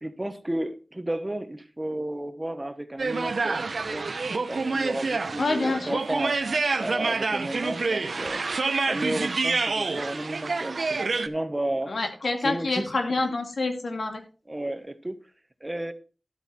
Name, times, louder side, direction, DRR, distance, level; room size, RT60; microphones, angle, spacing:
voice 1, 0.0-4.1 4.5-6.4 6.7-8.4 8.9-12.0 12.4-12.9 14.5-15.2 15.6-15.9, right 1 dB, 20° right, 10 dB, 1.3 m, -32 dB
sound 1, 3.0-11.3, right 4 dB, 75° right, 0.9 m, -27 dB
voice 2, 5.4-6.0 11.9-14.2, left 3 dB, 80° left, 4 dB, 2.5 m, -27 dB
12.5 x 8.2 x 4.3 m, 0.35 s
wide cardioid pair, 70°, 0 cm